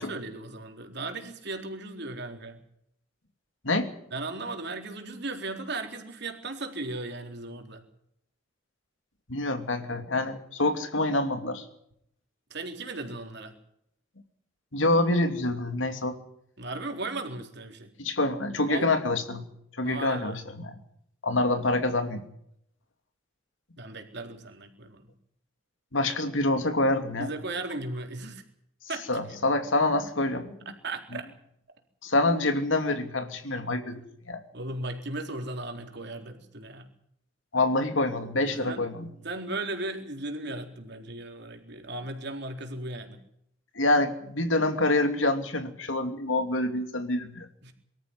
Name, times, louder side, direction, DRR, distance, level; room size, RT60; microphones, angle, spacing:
voice 1, 0.0-2.6 4.1-7.8 12.5-13.6 16.6-17.9 18.7-18.9 19.8-20.4 23.8-25.1 27.2-28.4 28.9-29.2 30.7-31.3 34.5-36.9 38.4-38.8 39.2-43.2 47.6-47.7, right 2 dB, 60° right, 4 dB, 4.0 m, -36 dB
voice 2, 9.3-11.6 14.7-16.2 18.0-19.4 19.8-20.8 21.2-22.2 25.9-27.3 29.1-30.5 32.0-34.0 34.3-34.4 37.5-39.1 43.7-47.5, left 2 dB, 80° left, 7 dB, 2.8 m, -26 dB
24.0 x 13.5 x 9.7 m, 0.72 s
head